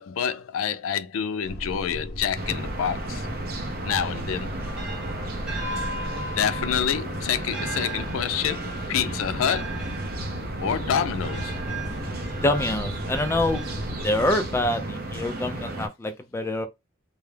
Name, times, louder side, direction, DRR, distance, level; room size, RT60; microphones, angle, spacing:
voice 1, 0.0-3.3 3.8-4.5 6.4-9.8 10.6-11.6, left 8 dB, 85° left, 0.4 m, -27 dB
sound 1, 1.4-14.7, equal, 50° left, 0.7 m, -36 dB
sound 2, 2.3-15.9, right 2 dB, 45° right, 0.6 m, -34 dB
sound 3, 4.4-14.3, right 2 dB, 5° right, 0.9 m, -38 dB
voice 2, 12.4-13.7 14.0-16.7, left 1 dB, 10° left, 0.3 m, -26 dB
2.3 x 2.0 x 3.1 m
head